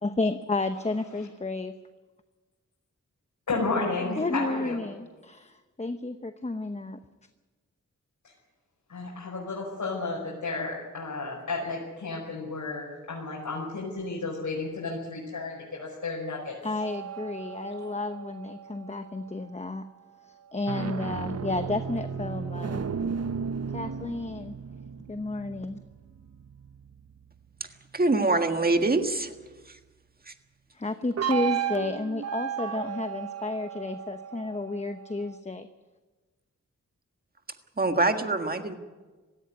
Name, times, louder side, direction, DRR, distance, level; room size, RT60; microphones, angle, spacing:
voice 1, 0.0-1.7 4.0-7.0 16.6-19.8 20.3-22.8 23.7-24.6 25.1-25.8 30.7-35.7, left 2 dB, 20° left, 8 dB, 0.9 m, -32 dB
voice 2, 3.5-4.8 8.9-16.5, left 3 dB, 80° left, -4 dB, 5.2 m, -32 dB
sound 1, 16.8-19.4 20.5-27.3 31.2-35.4, right 7 dB, 55° right, 0.8 m, -35 dB
voice 3, 27.9-29.3 29.7-29.8 30.3-30.4 37.8-38.7, right 2 dB, 30° right, 6 dB, 1.7 m, -24 dB
17.5 x 15.5 x 9.5 m, 1.3 s
wide cardioid pair, 70°, 30 cm